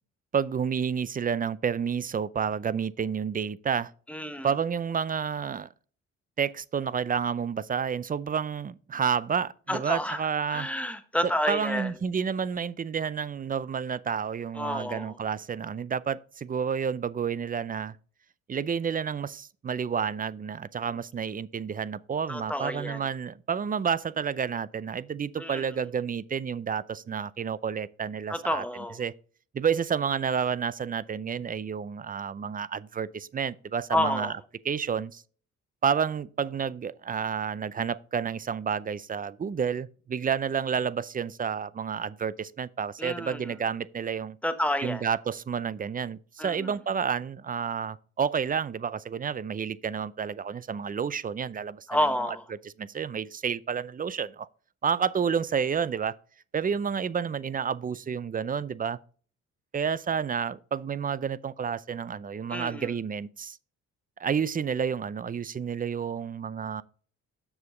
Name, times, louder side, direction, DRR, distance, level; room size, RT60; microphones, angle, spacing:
voice 1, 0.3-3.9 4.4-5.7 6.4-10.7 11.5-18.0 18.5-28.6 29.0-29.1 29.5-34.3 34.6-35.2 35.8-44.4 44.8-51.9 52.8-54.5 54.8-56.2 56.5-59.0 59.7-63.6 64.2-66.8, right 7 dB, 30° right, 0.5 m, -30 dB
voice 2, 4.1-4.5 9.7-11.9 14.5-15.2 22.3-23.0 25.4-25.7 28.3-29.0 33.9-34.3 43.0-43.6 44.4-45.0 46.4-46.7 51.9-52.4 62.5-62.9, left 1 dB, 5° left, 1.2 m, -30 dB
7.2 x 6.7 x 3.8 m
cardioid pair, 90°, 30 cm